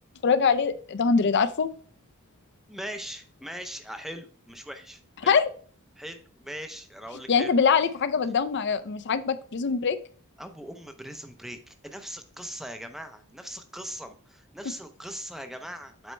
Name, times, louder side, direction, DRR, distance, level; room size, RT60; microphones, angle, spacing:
voice 1, 0.2-1.7 5.2-5.5 7.3-10.0, left 5 dB, 50° left, 12 dB, 0.5 m, -23 dB
voice 2, 2.7-5.4 6.0-7.5 10.4-16.1, equal, ahead, 7 dB, 0.6 m, -40 dB
8.1 x 4.3 x 3.2 m, 0.43 s
head